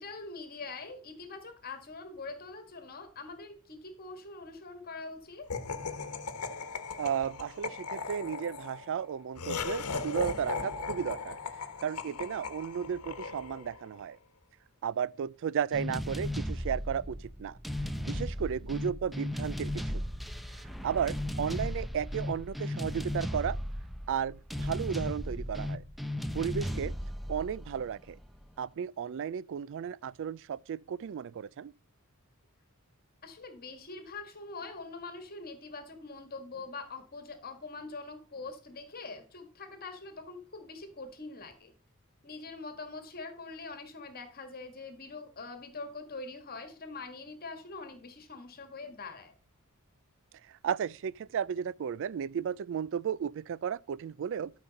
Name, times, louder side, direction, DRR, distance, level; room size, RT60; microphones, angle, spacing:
voice 1, 0.0-5.5 12.0-12.3 26.6-26.9 33.2-41.7 42.2-49.3, left 3 dB, 45° left, 1.5 m, -44 dB
Laughter, 5.5-13.9, left 4 dB, 80° left, 1.1 m, -38 dB
voice 2, 7.0-11.4 11.8-14.2 14.8-17.6 18.0-19.8 20.8-23.6 24.1-25.8 26.3-26.9 27.3-28.2 28.6-31.7 50.5-54.5, right 8 dB, 60° right, 0.3 m, -34 dB
sound 1, 15.7-28.5, left 1 dB, ahead, 0.6 m, -36 dB
13.0 x 6.0 x 4.0 m
head